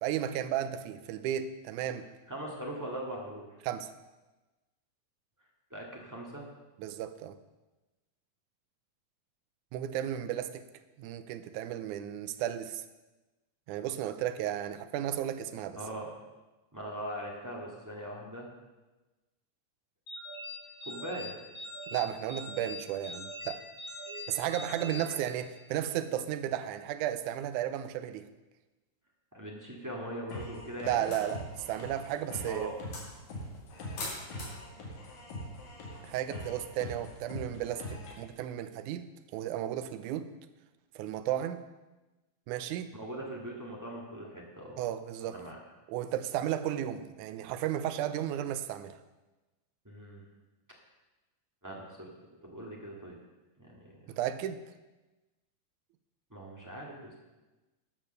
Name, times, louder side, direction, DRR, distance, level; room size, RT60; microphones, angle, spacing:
voice 1, 0.0-2.1 3.7-3.9 6.8-7.4 9.7-10.7 11.0-12.8 13.7-15.8 21.9-23.6 24.3-28.3 30.8-32.7 36.0-39.1 39.3-40.3 41.0-41.6 42.5-42.9 44.8-45.4 45.9-49.0 54.1-54.6, right 11 dB, 80° right, 11 dB, 1.9 m, -34 dB
voice 2, 2.3-3.5 5.7-6.4 15.7-16.1 16.7-18.5 20.8-21.3 25.0-25.2 29.3-31.1 32.4-32.7 42.9-44.8 45.3-45.5 49.8-50.2 51.6-52.1 52.4-53.2 53.6-54.0 56.3-57.2, right 1 dB, 15° right, -3 dB, 0.5 m, -41 dB
sound 1, 20.1-25.8, left 1 dB, 40° left, 4.3 m, -43 dB
sound 2, 30.3-38.3, left 1 dB, 85° left, 3.7 m, -43 dB
sound 3, 31.0-36.5, left 2 dB, 55° left, 4.4 m, -47 dB
12.0 x 6.5 x 6.7 m, 1.1 s
omnidirectional pair, 3.9 m